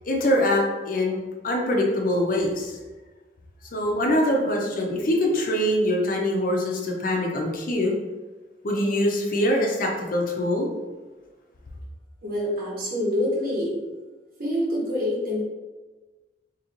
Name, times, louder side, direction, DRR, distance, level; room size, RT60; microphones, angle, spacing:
voice 1, 0.1-1.2 1.4-2.8 3.7-7.9 8.6-10.7, left 1 dB, 50° left, 0 dB, 0.7 m, -23 dB
voice 2, 12.2-13.8 14.4-15.4, left 1 dB, 55° right, -5 dB, 1.3 m, -26 dB
3.0 x 3.0 x 3.8 m, 1.3 s
head